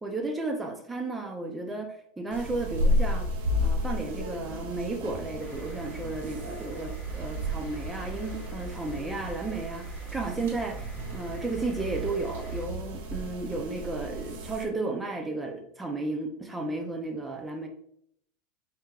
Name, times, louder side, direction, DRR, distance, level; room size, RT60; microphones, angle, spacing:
voice 1, 0.0-3.3 3.6-17.7, right 3 dB, 10° right, 4 dB, 0.6 m, -33 dB
sound 1, 2.3-14.7, left 1 dB, 85° right, 1.5 m, -33 dB
sound 2, 5.4-12.7, right 5 dB, 10° left, 1.1 m, -45 dB
5.1 x 4.3 x 2.4 m, 0.68 s
supercardioid pair, 140°, 0 cm